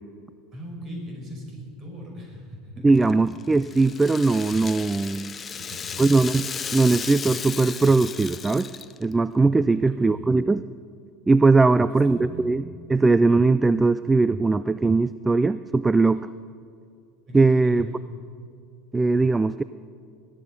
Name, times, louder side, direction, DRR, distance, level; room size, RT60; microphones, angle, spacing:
voice 1, 0.5-3.1 5.6-6.1 9.8-10.4 11.8-12.6 16.9-17.0 17.3-17.9, equal, 35° right, 0 dB, 5.2 m, -39 dB
voice 2, 2.8-5.4 6.0-6.5 6.7-8.7 9.0-10.6 11.3-12.6 12.9-16.3 17.3-17.9 18.9-19.6, right 3 dB, 15° right, 16 dB, 0.3 m, -20 dB
Rattle (instrument), 2.9-9.2, left 6 dB, 30° left, 0.6 m, -35 dB
21.0 x 11.5 x 5.3 m, 2.3 s
figure-of-eight pair, 75°, 0 cm